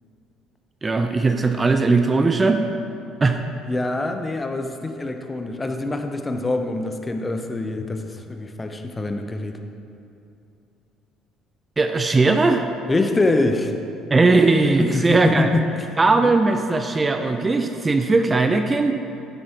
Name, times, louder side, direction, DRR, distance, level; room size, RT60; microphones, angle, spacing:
voice 1, 0.8-2.6 3.2-3.4 11.8-12.7 14.1-15.5 16.0-18.9, right 3 dB, 25° right, 7 dB, 0.6 m, -18 dB
voice 2, 3.7-9.6 12.9-13.7 14.8-15.9 16.2-16.3, left 2 dB, 20° left, 6 dB, 0.9 m, -24 dB
12.5 x 9.7 x 3.1 m, 2.7 s
figure-of-eight pair, 55°, 0 cm